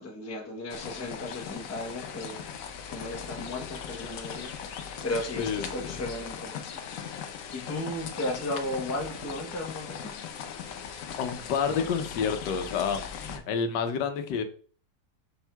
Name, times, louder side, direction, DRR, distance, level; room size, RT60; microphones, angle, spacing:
voice 1, 0.0-10.2, left 1 dB, 15° left, 0.5 m, -36 dB
sound 1, 0.7-13.4, left 7 dB, 65° left, 0.9 m, -39 dB
voice 2, 5.4-5.9 11.2-14.4, left 6 dB, 90° left, 1.3 m, -29 dB
5.3 x 4.4 x 2.2 m
omnidirectional pair, 1.8 m